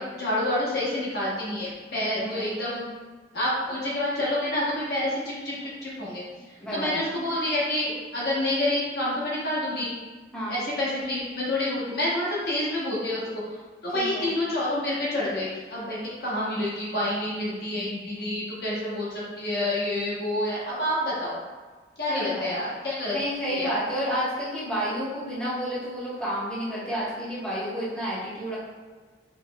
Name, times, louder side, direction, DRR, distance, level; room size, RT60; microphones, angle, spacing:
voice 1, 0.0-2.8 3.3-6.2 6.7-9.9 10.5-13.2 13.8-21.4 22.0-23.2 23.6-23.7, left 1 dB, 60° left, -7 dB, 1.1 m, -28 dB
voice 2, 2.1-2.5 6.3-7.1 10.3-10.6 13.9-14.3 22.1-22.5 23.1-28.6, equal, 5° left, -11 dB, 1.2 m, -30 dB
5.0 x 3.0 x 2.3 m, 1.4 s
head